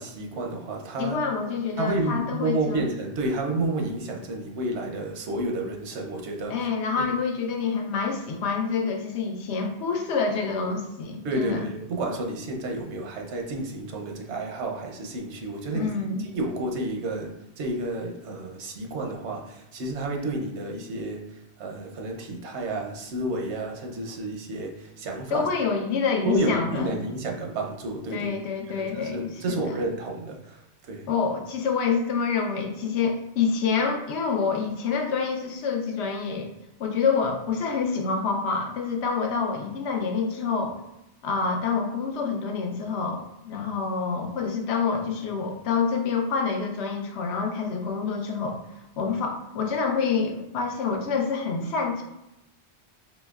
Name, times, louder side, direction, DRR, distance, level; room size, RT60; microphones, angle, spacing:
voice 1, 0.0-1.2 1.8-6.7 7.0-7.1 11.2-15.9 16.2-25.5 26.2-28.3 28.7-31.1, right 2 dB, 85° right, 1 dB, 1.0 m, -30 dB
voice 2, 1.0-2.9 6.5-11.7 15.7-16.2 25.3-26.9 28.1-29.7 31.1-36.5 36.8-40.8 41.2-48.6 49.0-52.0, left 5 dB, 75° left, 3 dB, 0.9 m, -27 dB
4.2 x 3.0 x 2.3 m, 0.91 s
omnidirectional pair, 1.1 m